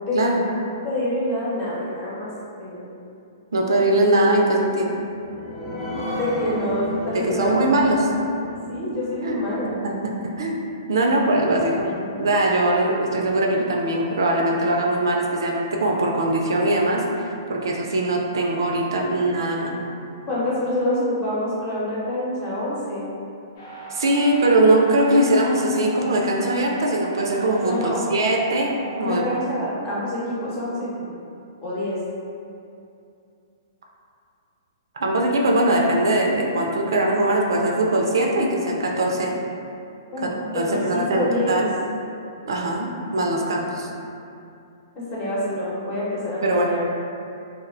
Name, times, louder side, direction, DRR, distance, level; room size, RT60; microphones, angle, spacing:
voice 1, 0.1-0.5 0.8-2.3 2.6-2.8 6.1-9.8 20.3-23.1 27.6-28.1 29.0-31.1 31.6-32.0 40.1-41.6 44.9-46.9, left 1 dB, 30° left, -8 dB, 0.8 m, -27 dB
voice 2, 3.5-4.9 7.1-8.0 9.2-9.3 9.8-9.9 10.2-10.6 10.9-19.8 23.9-29.2 35.0-39.3 40.2-41.7 42.4-43.9 46.4-46.7, right 1 dB, 75° right, 0 dB, 0.3 m, -21 dB
sound 1, 4.9-12.0 12.5-12.6 12.9-13.0, equal, 10° right, 0.5 m, -34 dB
sound 2, 23.5-29.4, right 5 dB, 60° left, 0.7 m, -38 dB
2.4 x 2.1 x 2.5 m, 2.6 s
hypercardioid pair, 130°, 2 cm